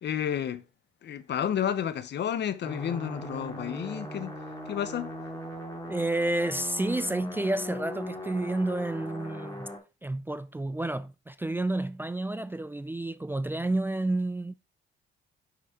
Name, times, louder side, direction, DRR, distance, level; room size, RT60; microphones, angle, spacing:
voice 1, 0.0-0.6 1.0-4.3 4.7-5.1, left 9 dB, 60° left, 0.9 m, -31 dB
sound 1, 2.6-9.8, equal, 15° left, 2.8 m, -39 dB
voice 2, 5.9-9.7 10.0-14.5, right 2 dB, 10° right, 0.4 m, -30 dB
6.0 x 6.0 x 4.3 m
cardioid pair, 90°, 20 cm